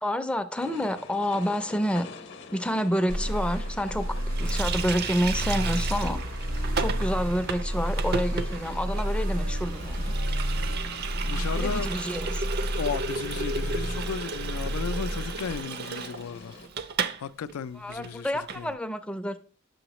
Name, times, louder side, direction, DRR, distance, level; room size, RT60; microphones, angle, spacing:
voice 1, 0.0-2.1 2.5-6.2 6.8-10.1 11.5-12.4 17.8-19.4, equal, 5° left, 0.4 m, -29 dB
sound 1, 0.6-16.7, left 4 dB, 55° left, 0.8 m, -47 dB
sound 2, 3.1-15.6, right 1 dB, 80° right, 0.9 m, -30 dB
Water tap faucet, 4.4-17.2 17.5-17.6 17.9-18.6, right 5 dB, 50° right, 0.5 m, -35 dB
voice 2, 11.2-11.9 12.7-16.6 17.2-18.7, left 6 dB, 85° left, 0.4 m, -35 dB
7.8 x 6.3 x 3.0 m
head